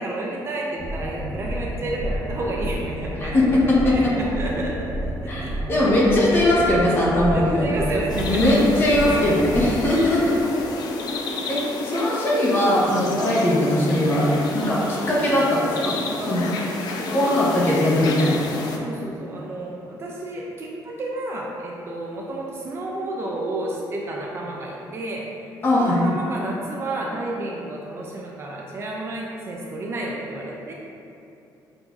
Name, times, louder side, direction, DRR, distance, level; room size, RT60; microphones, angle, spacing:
voice 1, 0.0-6.0 7.3-8.6 10.0-11.6 11.9-12.0 13.2-13.4 14.6-14.8 16.2-16.3 17.0-17.4 18.6-30.7, right 2 dB, 35° right, -2 dB, 0.3 m, -31 dB
sound 1, 0.8-9.9, right 1 dB, 75° right, 1.4 m, -30 dB
voice 2, 5.7-7.7 8.3-10.3 11.5-15.9 16.3-16.4 17.1-18.5 25.6-26.1, left 1 dB, 30° left, -6 dB, 0.8 m, -20 dB
sound 2, 8.1-18.8, left 3 dB, 60° left, 0.4 m, -31 dB
6.2 x 2.5 x 2.3 m, 2.7 s
cardioid pair, 180°, 8 cm